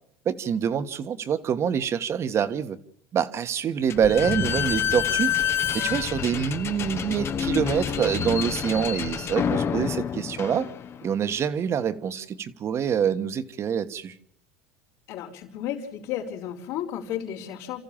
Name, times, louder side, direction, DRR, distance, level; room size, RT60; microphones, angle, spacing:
voice 1, 0.2-2.8 3.1-5.3 5.7-10.7 11.0-14.1, right 8 dB, 35° right, 12 dB, 1.4 m, -26 dB
Slam / Squeak, 3.9-11.2, left 8 dB, 35° left, 1.1 m, -28 dB
voice 2, 15.1-17.8, left 10 dB, 70° left, -8 dB, 4.2 m, -33 dB
28.0 x 14.0 x 7.4 m, 0.68 s
supercardioid pair, 105°, 7 cm